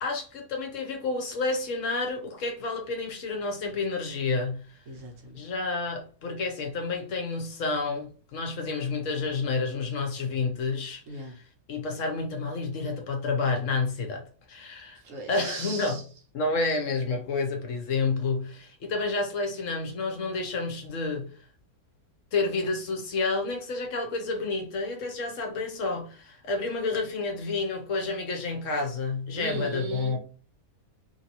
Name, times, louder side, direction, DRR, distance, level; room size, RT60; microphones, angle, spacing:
voice 1, 0.0-4.8 5.3-15.0 15.3-16.0 16.3-21.4 22.3-30.2, left 3 dB, 65° left, 1.0 m, -30 dB
voice 2, 4.9-5.4 11.1-11.3 15.0-16.0 29.4-30.2, right 3 dB, 65° right, 1.2 m, -38 dB
2.9 x 2.7 x 2.8 m
omnidirectional pair, 1.5 m